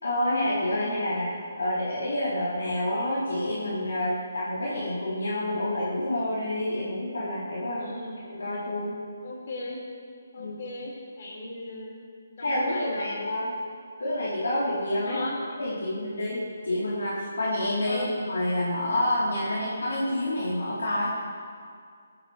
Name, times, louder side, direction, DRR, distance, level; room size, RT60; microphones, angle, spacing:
voice 1, 0.0-1.3 1.6-7.9 8.3-9.0 10.4-10.6 12.4-13.5 14.0-15.2 15.6-21.1, left 1 dB, 65° left, -8 dB, 3.8 m, -28 dB
voice 2, 7.8-8.2 9.2-9.8 10.3-11.9 12.4-13.2 15.0-15.4 17.8-18.1, left 2 dB, 45° left, -3 dB, 5.1 m, -37 dB
20.5 x 16.5 x 3.4 m, 2.2 s
figure-of-eight pair, 140°, 0 cm